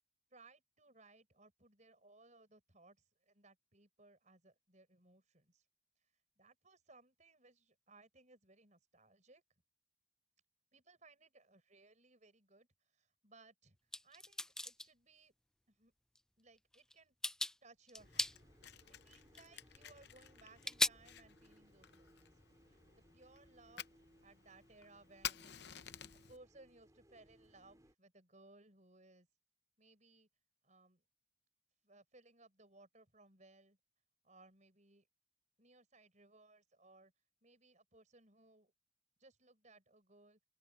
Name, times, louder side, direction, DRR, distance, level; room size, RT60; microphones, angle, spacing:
voice 1, 0.3-5.6 6.4-9.4 10.7-13.8 14.0-15.3 15.7-15.9 16.4-17.2 17.6-18.3 19.0-22.2 22.7-23.9 24.2-25.5 26.3-29.3 29.8-30.3 30.6-31.0 31.8-33.8 34.2-35.1 35.6-37.1 37.4-38.7 39.2-40.4, right 2 dB, 35° right, 5.8 m, -64 dB
sound 1, 13.9-14.9 16.2-16.3 16.7-16.9 17.2-17.5 17.9-18.4 19.4-19.5 20.6-20.9, left 1 dB, 5° left, 0.3 m, -36 dB
Fire, 18.0-26.4, left 10 dB, 55° left, 0.7 m, -52 dB
sound 2, 18.0-27.9, equal, 15° right, 4.9 m, -66 dB
open air
head